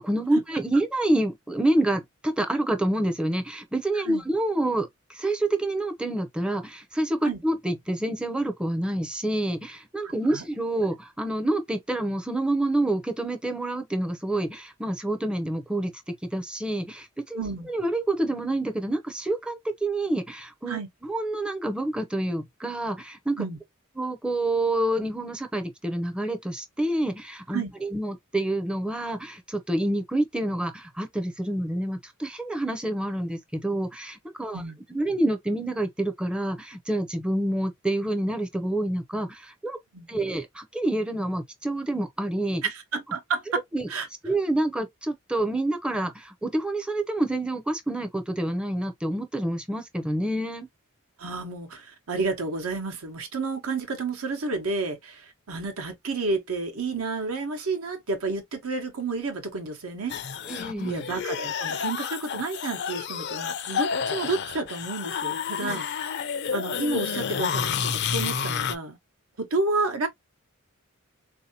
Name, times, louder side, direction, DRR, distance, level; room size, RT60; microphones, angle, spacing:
voice 1, 0.0-23.4 24.0-34.6 34.9-39.8 40.1-42.6 43.7-43.9 44.2-50.7 60.5-61.0 65.6-65.8, right 1 dB, 5° right, 0.5 m, -28 dB
voice 2, 10.0-10.4 17.3-17.7 20.7-20.9 23.4-23.6 27.5-27.7 34.5-34.8 39.9-40.1 42.6-43.6 43.9-44.1 51.2-60.2 60.8-66.2 66.5-69.0 69.4-70.1, right 3 dB, 85° right, 1.0 m, -30 dB
sound 1, 60.1-68.8, left 7 dB, 50° left, 0.4 m, -30 dB
3.7 x 2.7 x 2.7 m
head